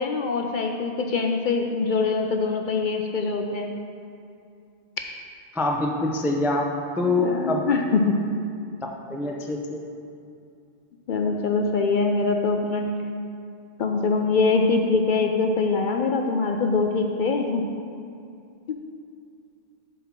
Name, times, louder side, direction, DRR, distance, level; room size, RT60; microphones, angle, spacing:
voice 1, 0.0-3.7 7.2-8.1 11.1-12.9 13.8-17.6 18.7-18.8, left 4 dB, 60° left, 3 dB, 0.6 m, -23 dB
voice 2, 5.5-6.6 7.0-7.6 9.1-9.8, left 2 dB, 5° right, 0 dB, 0.3 m, -24 dB
7.4 x 4.1 x 5.9 m, 2.5 s
omnidirectional pair, 1.1 m